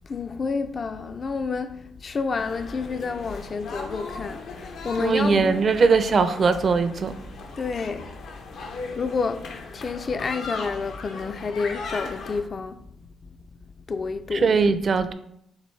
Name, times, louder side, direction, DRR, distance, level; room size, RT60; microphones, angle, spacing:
voice 1, 0.1-5.6 7.6-8.1 9.0-12.7 13.9-14.5, left 4 dB, 40° left, 0.3 m, -29 dB
sound 1, 2.4-12.4, left 3 dB, 75° left, 0.7 m, -38 dB
voice 2, 5.0-7.1 14.3-15.1, right 4 dB, 45° right, 0.4 m, -20 dB
6.5 x 2.6 x 3.1 m
cardioid pair, 90°, 0 cm